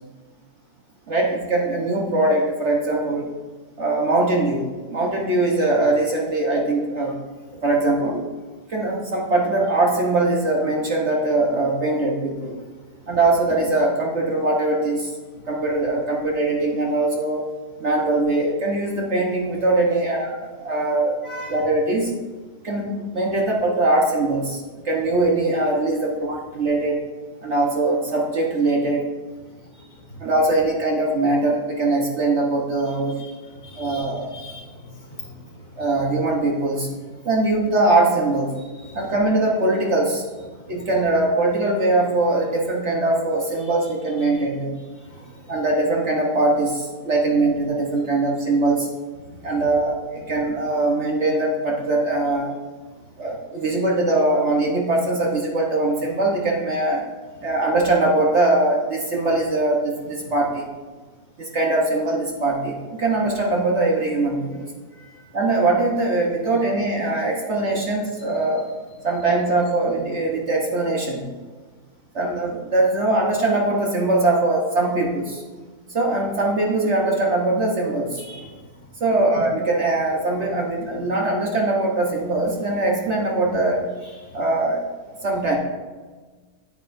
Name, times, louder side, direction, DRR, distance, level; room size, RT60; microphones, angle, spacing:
voice 1, 1.1-3.3 3.8-7.2 7.5-8.2 8.7-12.6 13.1-15.1 15.5-17.4 17.8-21.2 21.5-22.1 22.6-27.0 27.4-29.1 30.2-33.2 33.8-34.3 35.8-36.9 37.2-38.6 38.9-40.2 40.7-44.8 45.5-48.9 49.4-52.5 53.2-57.0 57.4-60.7 61.4-64.7 65.3-68.7 69.0-71.3 72.1-75.4 75.9-78.2 79.0-83.9 84.3-84.8 85.2-85.6, right 2 dB, 50° right, -2 dB, 1.3 m, -21 dB
voice 2, 21.2-21.6 29.7-30.2 33.4-35.8 38.8-39.0 40.6-40.8 45.0-45.5 49.2-49.4 64.9-65.2 78.2-78.6, left 2 dB, 55° left, -4 dB, 2.6 m, -41 dB
9.9 x 8.9 x 2.6 m, 1.4 s
omnidirectional pair, 1.7 m